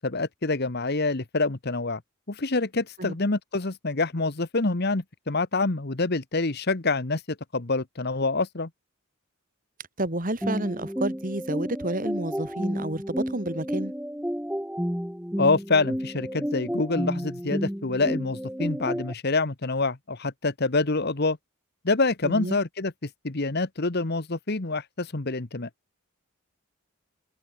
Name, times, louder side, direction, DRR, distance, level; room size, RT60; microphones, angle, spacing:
voice 1, 0.0-2.0 2.3-8.7 15.4-21.4 21.8-25.7, left 3 dB, 45° left, 1.2 m, -26 dB
voice 2, 10.0-13.9 22.2-22.6, right 1 dB, 35° right, 3.3 m, -30 dB
sound 1, 10.4-19.1, equal, 5° right, 2.6 m, -31 dB
open air
head